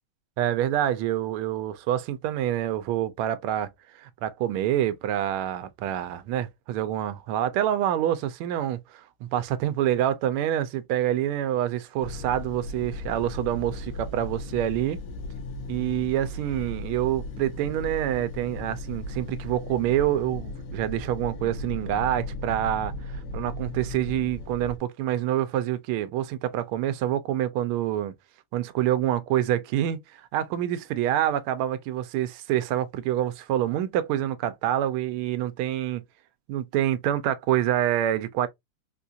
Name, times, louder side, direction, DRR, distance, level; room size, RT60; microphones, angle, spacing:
voice 1, 0.4-3.7 4.0-15.0 15.7-22.9 23.3-28.1 28.5-36.0 36.5-38.5, right 12 dB, 85° right, 1.5 m, -27 dB
sound 1, 12.0-24.8, left 1 dB, 85° left, 1.8 m, -36 dB
4.3 x 2.4 x 2.5 m
omnidirectional pair, 2.3 m